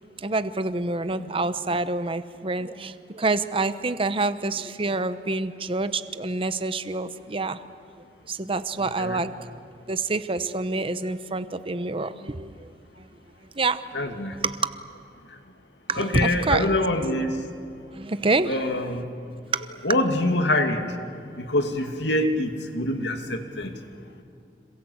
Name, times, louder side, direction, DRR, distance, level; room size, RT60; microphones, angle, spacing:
voice 1, 0.2-7.6 8.3-9.5 9.9-12.7 13.5-14.1 14.4-14.7 15.9-16.7 17.0-17.1 17.9-18.5 19.5-19.6, right 3 dB, 30° right, 12 dB, 0.9 m, -27 dB
voice 2, 13.9-14.4 16.0-17.4 18.5-19.1 19.8-20.9 21.3-23.7, left 1 dB, 85° left, 5 dB, 2.6 m, -25 dB
27.0 x 26.5 x 8.1 m, 2.5 s
head